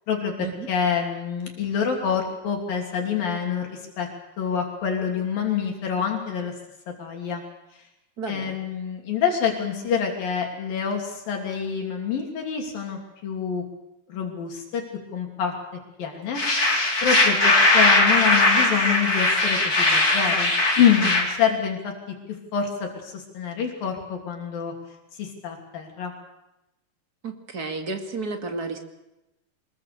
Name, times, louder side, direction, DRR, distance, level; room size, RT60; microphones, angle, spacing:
voice 1, 0.1-4.1 4.4-6.5 6.9-7.4 8.3-13.6 14.1-14.8 15.1-15.5 16.0-16.7 17.0-21.9 22.3-24.7 25.1-26.1, left 7 dB, 70° left, 2 dB, 4.7 m, -26 dB
voice 2, 8.2-8.5 27.2-28.8, right 4 dB, 30° right, 4 dB, 2.3 m, -32 dB
sound 1, 16.3-21.2, left 2 dB, 25° left, 4.0 m, -19 dB
25.5 x 21.5 x 6.8 m, 0.94 s
omnidirectional pair, 4.2 m